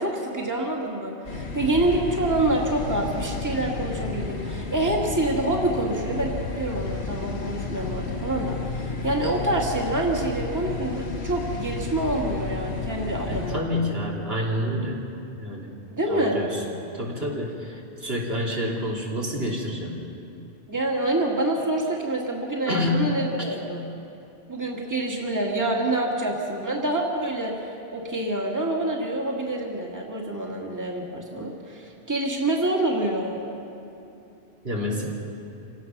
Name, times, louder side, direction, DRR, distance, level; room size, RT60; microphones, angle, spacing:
voice 1, 0.0-13.7 15.9-16.4 20.7-23.8 24.5-27.6 27.9-33.4, right 1 dB, 15° right, -1 dB, 2.1 m, -27 dB
sound 1, 1.2-13.5, left 3 dB, 85° left, 2.0 m, -32 dB
voice 2, 13.3-15.0 15.4-15.7 16.1-16.6 16.9-20.0 22.7-23.0 34.6-35.1, left 1 dB, 65° right, -3 dB, 3.5 m, -28 dB
27.5 x 17.5 x 6.1 m, 2.7 s
omnidirectional pair, 1.1 m